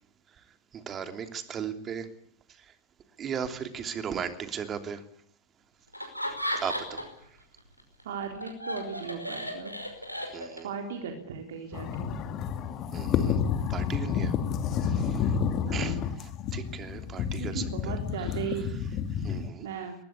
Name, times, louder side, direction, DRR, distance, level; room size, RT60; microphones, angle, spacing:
voice 1, 0.7-2.1 3.2-5.0 6.6-7.1 10.3-10.7 12.9-13.4 13.7-14.3 14.8-15.3 15.7-17.9 19.2-19.6, right 7 dB, 25° right, 8 dB, 3.1 m, -36 dB
Laughter, 5.9-7.2 7.6-10.8, equal, 90° right, 5.3 m, -35 dB
voice 2, 8.0-9.7 10.6-12.2 15.6-16.0 17.4-18.7 19.6-19.9, right 6 dB, 55° right, 4 dB, 3.7 m, -37 dB
sound 1, 11.7-19.5, left 7 dB, 35° left, 2.4 m, -30 dB
23.0 x 20.5 x 8.5 m, 0.66 s
figure-of-eight pair, 90°, 0 cm